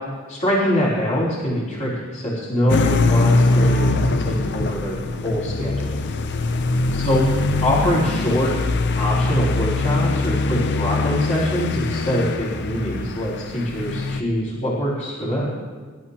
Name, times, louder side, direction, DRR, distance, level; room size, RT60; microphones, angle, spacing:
voice 1, 0.3-6.0 7.0-7.2 7.6-8.5 8.9-15.5, equal, 40° left, -7 dB, 4.0 m, -24 dB
sound 1, 2.7-14.2, left 3 dB, 60° left, 0.6 m, -22 dB
25.5 x 13.0 x 2.9 m, 1.5 s
head